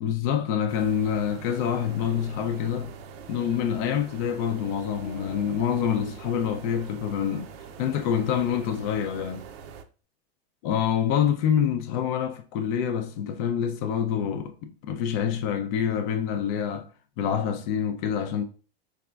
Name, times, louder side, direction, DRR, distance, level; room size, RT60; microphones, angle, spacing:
voice 1, 0.0-2.9 3.3-7.5 7.8-9.4 10.6-16.9 17.2-18.4, left 8 dB, 50° left, 0.5 m, -26 dB
sound 1, 0.7-9.8, right 6 dB, 70° right, 0.6 m, -44 dB
sound 2, 5.0-7.2, left 5 dB, 85° left, 0.7 m, -47 dB
4.7 x 2.3 x 2.3 m
hypercardioid pair, 125°, 31 cm